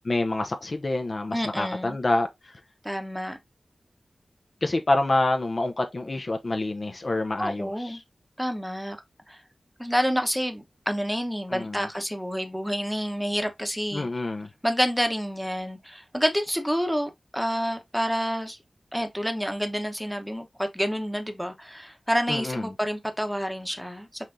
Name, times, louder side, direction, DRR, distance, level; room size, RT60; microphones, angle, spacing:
voice 1, 0.0-2.6 4.6-8.0 11.5-11.9 13.9-14.5 22.3-22.7, left 2 dB, 45° left, 0.7 m, -27 dB
voice 2, 1.3-2.0 2.8-3.4 7.4-8.0 8.4-9.0 9.3-9.4 9.8-14.1 14.6-18.6 18.9-24.2, equal, ahead, 1.0 m, -28 dB
5.7 x 3.2 x 2.6 m
wide cardioid pair, 75°, 0 cm